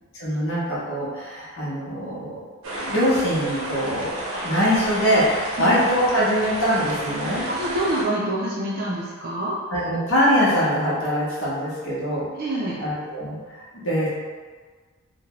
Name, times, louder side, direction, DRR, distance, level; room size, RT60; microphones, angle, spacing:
voice 1, 0.2-2.4 2.6-4.1 4.4-7.5 9.7-12.3 12.8-14.1, equal, 65° left, -8 dB, 0.9 m, -23 dB
sound 1, 2.6-8.0, right 1 dB, 80° right, 0.7 m, -31 dB
voice 2, 7.5-9.6 12.4-12.8, right 1 dB, 45° right, -6 dB, 0.4 m, -26 dB
2.8 x 2.1 x 2.9 m, 1.5 s
head